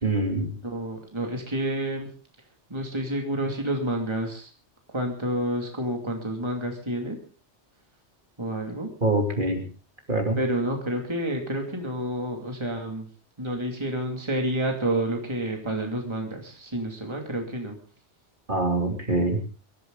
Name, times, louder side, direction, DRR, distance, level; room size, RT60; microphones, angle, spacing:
voice 1, 0.0-0.6 9.0-9.6 10.1-10.4 18.5-19.4, right 2 dB, 45° right, 3 dB, 3.0 m, -24 dB
voice 2, 0.6-2.1 2.7-4.5 4.9-7.2 8.4-8.9 10.4-13.1 13.4-17.8 18.9-19.0, right 1 dB, 25° right, 2 dB, 2.7 m, -29 dB
24.0 x 13.5 x 3.9 m, 0.37 s
omnidirectional pair, 1.2 m